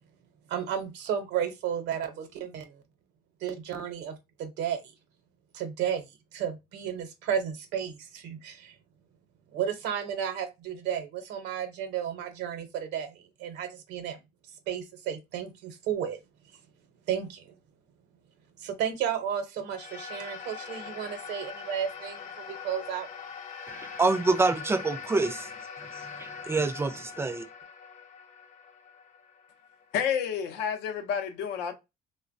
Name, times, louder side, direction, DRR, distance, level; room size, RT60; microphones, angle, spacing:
voice 1, 0.5-2.8 3.4-4.8 5.5-6.1 6.3-8.8 9.5-14.2 14.7-16.2 17.1-17.5 18.6-23.1, right 8 dB, 85° right, 0.7 m, -33 dB
sound 1, 19.7-30.2, left 6 dB, 45° left, 0.7 m, -43 dB
voice 2, 23.7-27.5, right 3 dB, 15° right, 0.4 m, -27 dB
voice 3, 29.9-31.7, left 7 dB, 90° left, 0.6 m, -30 dB
3.0 x 2.1 x 2.5 m
cardioid pair, 110°, 17 cm